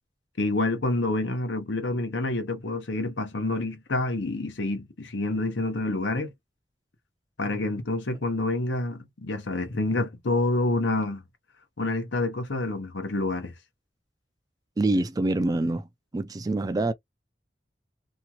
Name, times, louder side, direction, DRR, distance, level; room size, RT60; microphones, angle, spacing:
voice 1, 0.4-6.3 7.4-11.2 11.8-13.5, left 2 dB, 80° left, 0.9 m, -28 dB
voice 2, 14.8-15.9 16.1-16.9, right 2 dB, 20° right, 0.3 m, -25 dB
2.9 x 2.3 x 2.8 m
head